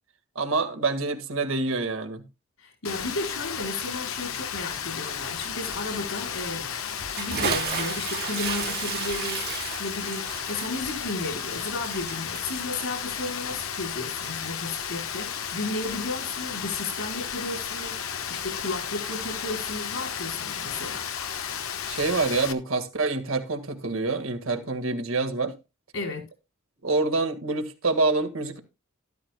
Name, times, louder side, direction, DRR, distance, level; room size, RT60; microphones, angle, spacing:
voice 1, 0.3-2.2 21.9-25.5 26.8-28.6, right 3 dB, 70° right, 1.7 m, -26 dB
voice 2, 2.6-6.8 7.2-9.5 9.8-21.0 25.9-26.2, left 2 dB, 70° left, 4.7 m, -34 dB
Rain, 2.8-22.5, left 8 dB, 85° left, 1.1 m, -33 dB
Bathtub (filling or washing) / Splash splatter, 7.1-13.7, right 7 dB, 50° right, 1.8 m, -33 dB
12.5 x 12.5 x 2.2 m
head